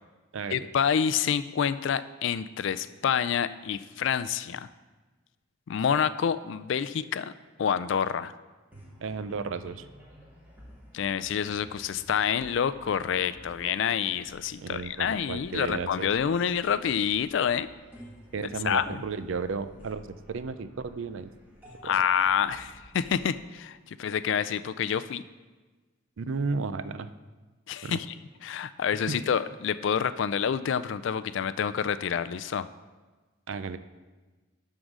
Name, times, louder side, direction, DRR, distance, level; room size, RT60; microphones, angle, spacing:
voice 1, 0.5-4.7 5.7-7.3 7.6-8.3 10.9-17.7 18.4-19.0 21.8-25.2 27.7-28.2 28.4-32.7, left 7 dB, 60° left, 14 dB, 0.3 m, -28 dB
sound 1, 8.7-24.4, equal, 10° right, 1.6 m, -52 dB
voice 2, 9.0-9.9 14.6-16.1 18.3-21.3 21.8-21.9 26.2-27.1 27.8-28.0 29.1-29.2 33.5-33.8, right 4 dB, 70° right, 12 dB, 0.4 m, -33 dB
11.5 x 3.8 x 6.1 m, 1.3 s
head